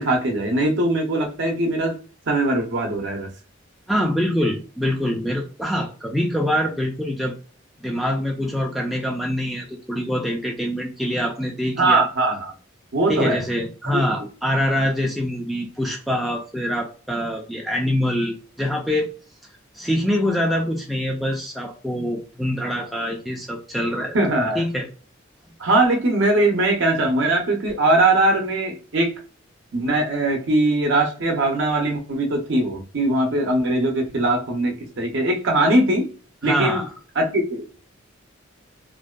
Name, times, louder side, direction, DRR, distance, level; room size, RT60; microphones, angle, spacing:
voice 1, 0.0-2.0 2.3-3.3 11.8-12.5 12.9-13.4 13.9-14.0 24.1-24.6 25.6-29.1 29.7-36.1 36.4-36.8 37.2-37.9, right 2 dB, 60° right, 2 dB, 0.6 m, -21 dB
voice 2, 3.9-7.4 7.8-12.0 13.1-19.1 19.7-24.9 36.4-36.9, equal, ahead, -1 dB, 0.3 m, -24 dB
2.5 x 2.2 x 2.2 m, 0.37 s
head